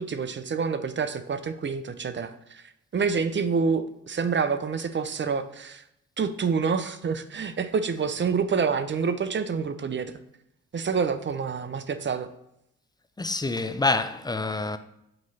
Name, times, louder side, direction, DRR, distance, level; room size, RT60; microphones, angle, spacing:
voice 1, 0.0-2.6 2.9-5.8 6.2-10.1 10.7-12.3, right 5 dB, 35° right, 0.6 m, -27 dB
voice 2, 13.2-14.8, left 3 dB, 10° left, 0.5 m, -27 dB
7.6 x 3.0 x 4.1 m
hypercardioid pair, 45°, 34 cm